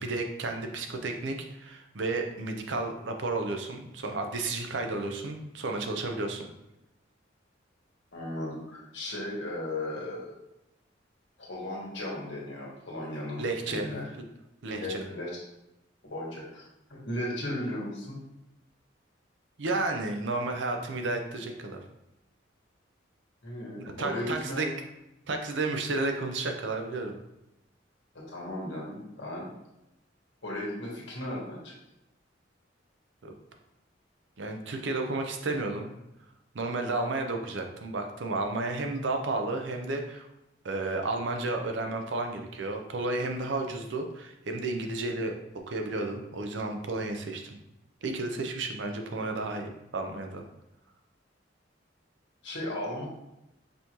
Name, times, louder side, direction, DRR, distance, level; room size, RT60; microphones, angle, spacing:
voice 1, 0.0-6.5 13.4-13.9 14.6-15.0 19.6-21.8 23.8-24.7 25.3-27.2 33.2-33.3 34.4-35.9 36.5-40.3 40.6-45.3 45.7-47.6 48.0-50.4, right 2 dB, 70° right, 4 dB, 0.6 m, -32 dB
voice 2, 8.1-10.3 11.4-14.1 14.7-15.4 16.0-16.6 16.9-18.2 23.4-24.7 28.1-29.5 30.4-31.7 52.4-53.1, left 1 dB, 70° left, -4 dB, 1.5 m, -36 dB
5.4 x 2.7 x 3.0 m, 0.88 s
head